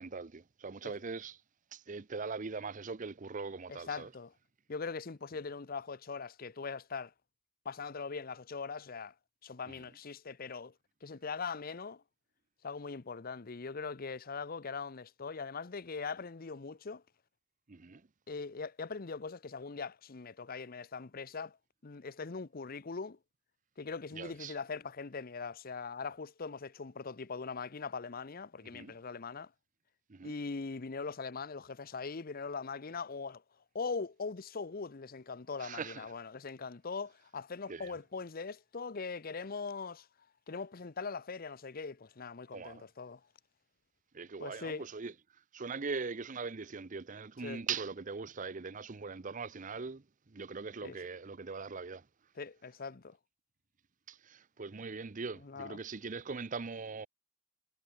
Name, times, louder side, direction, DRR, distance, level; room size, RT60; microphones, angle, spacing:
voice 1, 0.0-1.4 1.7-4.1 9.7-9.8 17.7-18.0 24.1-24.5 28.7-28.9 30.1-30.3 35.6-36.1 37.7-37.9 42.5-42.8 44.1-45.1 45.5-52.0 54.1-57.1, right 4 dB, 40° right, 0.7 m, -41 dB
voice 2, 3.7-4.3 4.7-7.1 7.6-9.1 9.4-10.7 11.0-12.0 12.6-17.0 18.3-21.6 21.8-23.2 23.8-29.5 30.2-33.4 33.7-40.1 40.5-43.2 44.4-44.8 47.4-47.6 50.8-51.0 52.4-53.2 55.4-55.8, left 4 dB, 45° left, 0.7 m, -41 dB
head